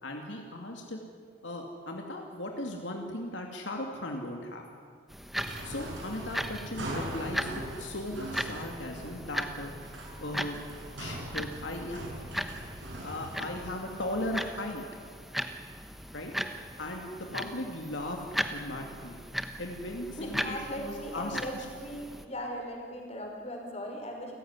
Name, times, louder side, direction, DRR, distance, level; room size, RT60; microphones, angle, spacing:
voice 1, 0.0-1.0 1.4-4.6 5.6-9.7 10.2-10.6 11.0-12.0 13.0-14.8 16.1-16.3 16.8-19.2 19.6-21.7, left 1 dB, 75° left, 2 dB, 2.5 m, -37 dB
sound 1, 5.1-22.2, equal, ahead, 1.0 m, -38 dB
sound 2, 5.3-16.7, right 1 dB, 80° right, 7.7 m, -42 dB
voice 2, 20.2-24.4, equal, 35° left, 1 dB, 5.0 m, -38 dB
29.5 x 15.5 x 9.8 m, 2.1 s
head